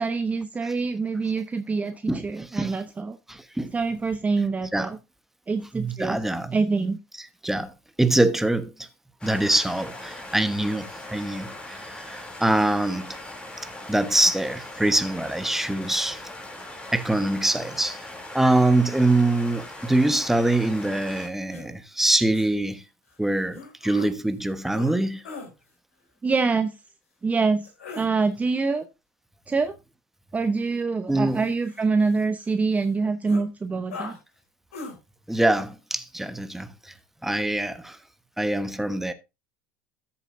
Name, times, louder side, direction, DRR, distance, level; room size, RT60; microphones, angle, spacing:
voice 1, 0.0-3.2 3.7-5.0 5.5-6.2 6.5-7.0 26.2-26.7 27.2-27.7 28.0-28.9 29.5-29.7 30.3-34.2, right 4 dB, 20° right, 0.8 m, -25 dB
voice 2, 2.1-2.8 3.3-3.7 4.7-4.9 5.7-6.5 7.4-7.7 8.0-8.9 9.2-13.2 13.9-16.2 16.9-22.8 23.2-25.2 31.1-31.5 35.3-36.9 37.2-38.0 38.4-39.1, right 2 dB, 5° right, 1.2 m, -24 dB
sound 1, 9.2-21.3, left 1 dB, 15° left, 3.1 m, -40 dB
sound 2, 21.5-21.7 22.3-22.5 23.5-24.1 24.7-25.0 25.2-25.5 27.6-28.1 31.1-32.4 32.8-32.9 33.2-33.4 33.9-34.2 34.7-34.9, left 3 dB, 80° left, 3.6 m, -39 dB
13.5 x 7.1 x 2.7 m
hypercardioid pair, 80°, 7 cm